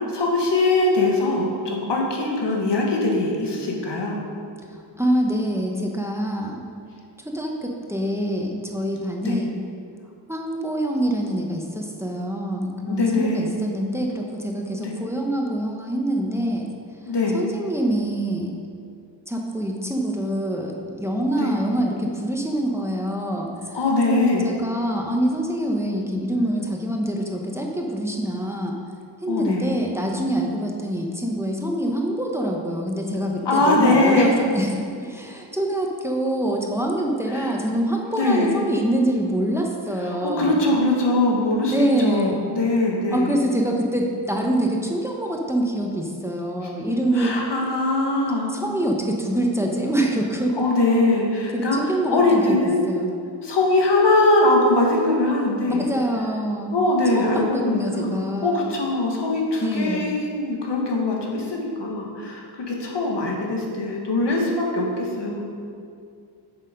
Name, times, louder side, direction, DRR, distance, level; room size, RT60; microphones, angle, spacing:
voice 1, 0.1-4.2 9.2-9.4 12.9-13.5 14.8-14.9 17.1-17.4 21.3-21.5 23.7-24.5 29.3-29.7 33.4-34.2 37.3-37.5 38.2-38.6 40.0-43.3 47.1-48.5 50.6-51.8 52.1-52.9 53.4-55.9 56.7-65.5, left 2 dB, 65° left, -1 dB, 1.7 m, -22 dB
voice 2, 5.0-6.6 7.2-9.5 10.3-16.7 17.3-18.5 19.3-23.8 24.1-28.8 29.2-40.6 41.7-42.4 43.1-47.3 48.5-50.5 51.5-52.6 52.9-53.1 55.7-56.8 57.1-58.7 59.6-60.1, right 1 dB, 5° right, 0 dB, 0.9 m, -25 dB
7.8 x 6.9 x 5.2 m, 2.3 s
wide cardioid pair, 125°, 46 cm